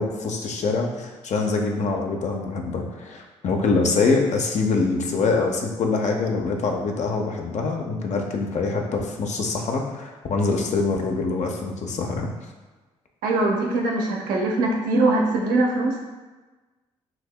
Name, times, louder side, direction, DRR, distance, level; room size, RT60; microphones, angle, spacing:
voice 1, 0.0-12.3, left 4 dB, 50° left, 2 dB, 0.7 m, -24 dB
voice 2, 13.2-16.0, right 2 dB, 70° right, -1 dB, 0.7 m, -22 dB
5.8 x 2.7 x 2.2 m, 1.2 s
hypercardioid pair, 45°, 15 cm